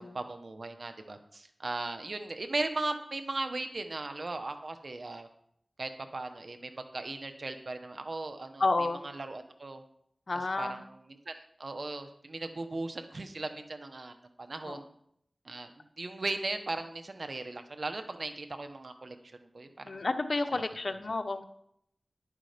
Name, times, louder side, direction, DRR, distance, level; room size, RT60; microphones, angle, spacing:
voice 1, 0.0-5.3 5.8-8.6 9.0-9.8 10.6-14.9 15.4-19.2 19.5-19.9 20.5-20.6, right 2 dB, 70° right, 7 dB, 1.3 m, -37 dB
voice 2, 8.6-9.0 10.3-10.8 14.6-14.8 19.8-21.4, left 3 dB, 70° left, 8 dB, 1.0 m, -31 dB
10.5 x 9.9 x 5.2 m, 0.70 s
cardioid pair, 40°, 0 cm